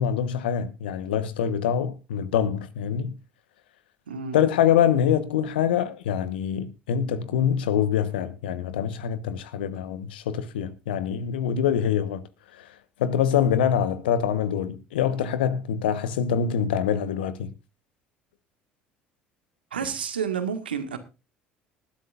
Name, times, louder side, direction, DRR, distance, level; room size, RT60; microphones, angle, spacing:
voice 1, 0.0-3.1 4.3-12.2 12.5-12.7 13.0-17.5, left 9 dB, 80° left, 1.2 m, -25 dB
voice 2, 4.1-4.4 19.7-21.0, right 7 dB, 90° right, 1.7 m, -30 dB
19.5 x 11.5 x 2.5 m
hypercardioid pair, 60°, 5 cm